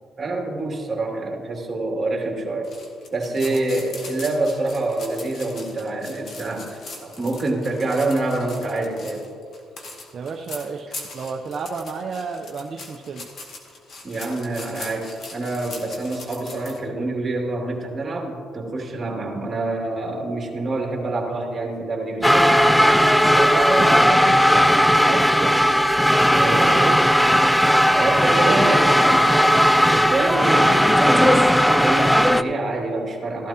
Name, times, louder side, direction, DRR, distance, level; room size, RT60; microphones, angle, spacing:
voice 1, 0.2-2.7 3.1-9.3 14.0-22.5 26.3-26.8 28.0-28.8 29.8-33.5, right 2 dB, 30° right, -1 dB, 2.6 m, -26 dB
sound 1, 2.6-16.8, left 3 dB, 60° left, 2.2 m, -40 dB
voice 2, 10.1-10.9 11.1-13.3 23.3-25.8 26.3-27.0 28.4-29.5, right 5 dB, 55° right, 2 dB, 0.7 m, -31 dB
sound 2, 22.2-32.4, equal, 5° left, 0.4 m, -16 dB
15.0 x 12.0 x 2.9 m, 2.3 s
cardioid pair, 90°, 0 cm